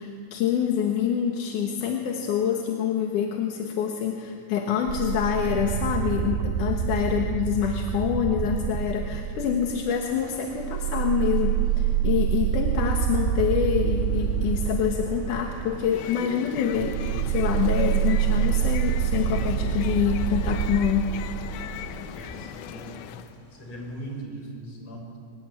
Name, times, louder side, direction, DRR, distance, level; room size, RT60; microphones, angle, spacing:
voice 1, 0.0-21.1, left 8 dB, 60° left, 2 dB, 2.6 m, -26 dB
sound 1, 4.9-10.1 10.5-22.1, right 10 dB, 80° right, 2.5 m, -27 dB
sound 2, 10.1-24.2, equal, 20° left, 1.0 m, -45 dB
sound 3, 15.7-23.4, left 12 dB, 75° left, 2.5 m, -39 dB
voice 2, 22.1-23.1 23.5-25.2, right 1 dB, 40° left, 0 dB, 6.5 m, -40 dB
24.0 x 19.5 x 9.9 m, 2.3 s
omnidirectional pair, 4.6 m